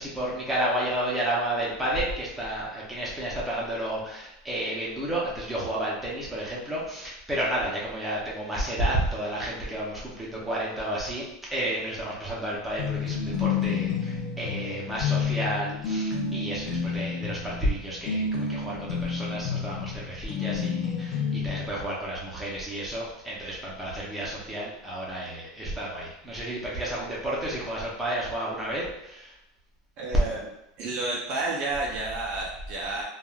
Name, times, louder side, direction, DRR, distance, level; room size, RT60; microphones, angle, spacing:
voice 1, 0.0-11.2 11.5-29.3, right 1 dB, 5° right, -6 dB, 0.6 m, -31 dB
sound 1, 12.8-21.7, left 5 dB, 45° left, 0.5 m, -30 dB
voice 2, 30.0-30.5 30.8-33.0, right 2 dB, 45° right, -2 dB, 0.5 m, -30 dB
3.1 x 2.3 x 2.3 m, 0.82 s
supercardioid pair, 165°, 2 cm